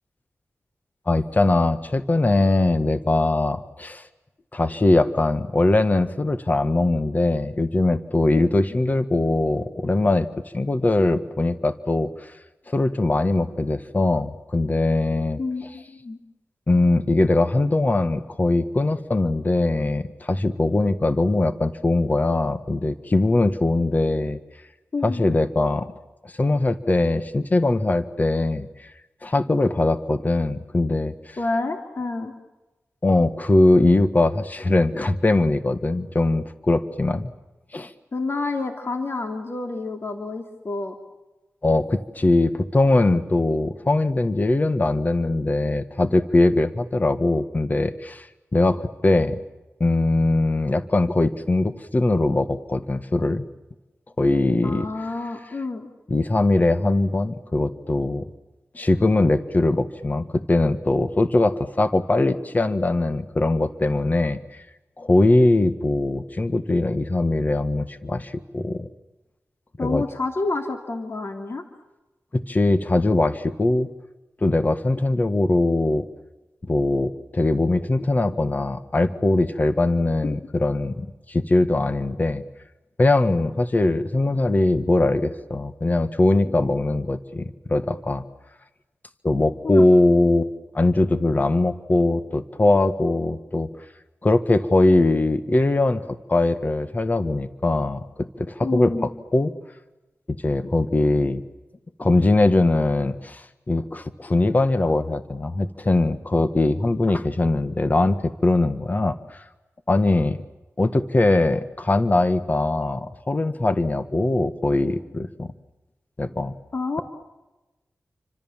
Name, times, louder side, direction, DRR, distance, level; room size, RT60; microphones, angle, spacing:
voice 1, 1.1-4.1 4.5-10.3 10.5-12.3 12.7-15.4 16.7-24.4 25.0-25.9 26.2-28.9 29.2-31.4 33.0-37.3 37.7-37.9 41.6-48.3 48.5-49.4 49.8-53.4 54.2-54.9 56.1-58.2 58.7-64.6 65.0-68.9 69.8-70.0 72.3-73.9 74.4-76.1 76.7-82.4 83.0-88.2 89.2-90.5 90.7-93.7 94.2-98.9 99.3-99.5 100.3-101.4 102.0-109.4 109.9-110.4 110.8-115.5 116.2-116.5, left 2 dB, 35° left, 10 dB, 1.6 m, -21 dB
voice 2, 15.4-16.2 24.9-25.3 31.4-32.3 38.1-40.9 54.6-55.9 69.8-71.6 80.2-80.3 89.6-89.8 98.6-99.1 116.7-117.0, left 3 dB, 55° left, 4 dB, 3.1 m, -28 dB
30.0 x 25.5 x 7.4 m, 1.0 s
wide cardioid pair, 90°, 5 cm